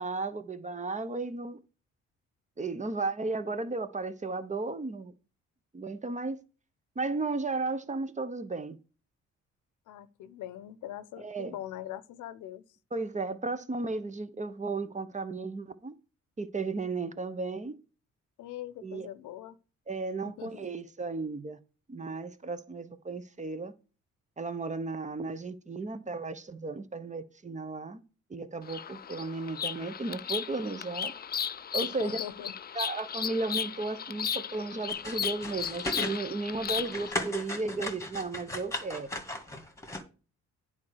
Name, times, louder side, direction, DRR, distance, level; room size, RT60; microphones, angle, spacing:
voice 1, 0.0-1.6 2.6-5.1 5.7-6.4 7.0-8.8 11.2-11.6 12.9-15.9 16.4-17.8 18.8-19.1 19.9-21.6 21.9-23.7 24.4-28.0 28.3-31.1 31.7-32.2 32.7-39.1, right 3 dB, 25° right, 1.0 m, -34 dB
voice 2, 9.9-12.6 18.4-19.6 20.2-20.7 31.8-32.5, left 12 dB, 85° left, 0.8 m, -42 dB
Bird vocalization bird call bird song, 28.6-37.1, left 8 dB, 30° left, 0.5 m, -35 dB
sound 1, 34.9-36.2 36.5-40.0, left 1 dB, 10° left, 1.9 m, -36 dB
9.5 x 4.4 x 6.4 m
cardioid pair, 90°, 30 cm